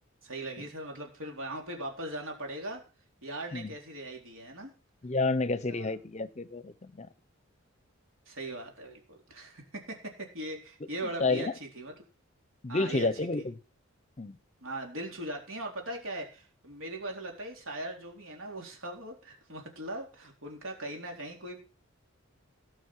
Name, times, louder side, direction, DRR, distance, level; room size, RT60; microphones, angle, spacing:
voice 1, 0.2-2.8 3.2-4.7 5.7-5.9 8.3-11.9 12.7-13.1 13.4-13.5 14.6-21.6, right 1 dB, 75° right, 1 dB, 4.0 m, -40 dB
voice 2, 5.0-7.1 11.2-11.5 12.6-13.6 14.2-14.4, left 3 dB, 35° left, 15 dB, 0.7 m, -30 dB
17.5 x 6.2 x 6.3 m, 0.35 s
head